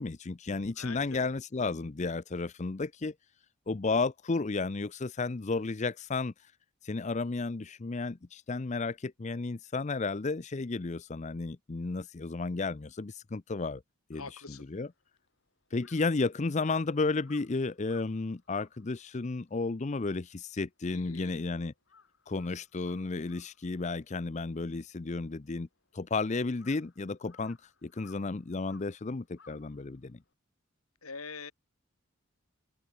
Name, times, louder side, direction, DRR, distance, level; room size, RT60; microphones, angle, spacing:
voice 1, 0.0-3.1 3.7-6.5 6.8-13.8 14.1-14.4 14.7-14.9 15.7-21.7 22.3-25.7 25.9-30.2, left 3 dB, 30° left, 0.5 m, -33 dB
voice 2, 0.8-1.3 14.1-14.6 20.9-21.3 31.0-31.5, left 4 dB, 80° left, 3.2 m, -44 dB
Crow, 14.9-21.4 21.7-30.3, left 5 dB, 55° left, 6.3 m, -62 dB
open air
head